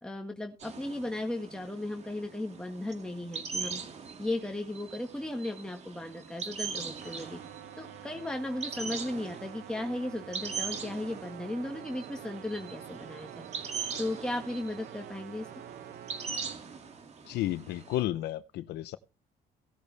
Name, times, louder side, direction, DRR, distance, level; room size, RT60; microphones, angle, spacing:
voice 1, 0.0-3.8 4.2-7.4 7.8-13.5 14.0-15.6, left 1 dB, 5° left, 1.7 m, -36 dB
sound 1, 0.6-18.0, right 5 dB, 40° right, 2.4 m, -42 dB
sound 2, 7.0-16.6, right 11 dB, 60° right, 1.0 m, -47 dB
voice 2, 17.2-19.0, left 14 dB, 80° left, 0.7 m, -32 dB
17.5 x 8.3 x 3.4 m
cardioid pair, 110°, 17 cm